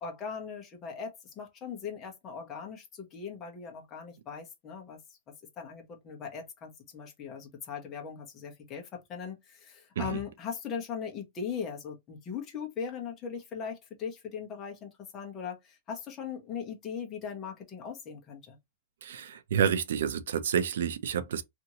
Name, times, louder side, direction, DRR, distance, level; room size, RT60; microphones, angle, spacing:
voice 1, 0.0-5.0 5.6-18.6, left 6 dB, 20° left, 0.8 m, -39 dB
voice 2, 19.0-21.4, right 8 dB, 80° right, 0.4 m, -29 dB
2.8 x 2.5 x 2.8 m
supercardioid pair, 175°, 0 cm